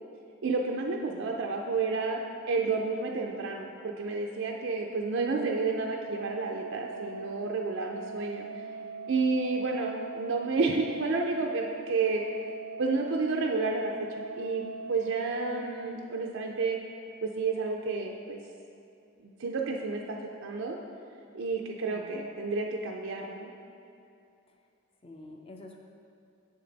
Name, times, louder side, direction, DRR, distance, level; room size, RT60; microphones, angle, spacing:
voice 1, 0.4-2.2 2.5-8.6 9.1-12.2 12.8-16.8 17.2-18.4 19.2-20.8 21.3-23.5, right 4 dB, 55° right, 1 dB, 0.4 m, -31 dB
Organ, 5.3-16.3, right 4 dB, 80° left, 0.8 m, -41 dB
voice 2, 25.0-25.8, left 2 dB, 25° left, 2 dB, 0.5 m, -48 dB
7.2 x 6.6 x 4.0 m, 2.6 s
head